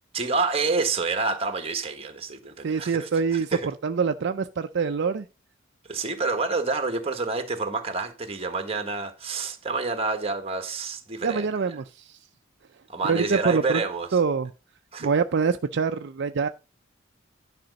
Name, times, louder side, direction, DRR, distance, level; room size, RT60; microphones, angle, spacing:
voice 1, 0.1-3.7 5.9-11.5 12.9-14.1 14.9-15.1, right 4 dB, 30° right, 1.4 m, -28 dB
voice 2, 2.6-5.3 11.2-12.2 13.0-13.8 14.1-14.5 15.0-16.5, right 5 dB, 60° right, 0.4 m, -25 dB
10.5 x 5.0 x 5.2 m
head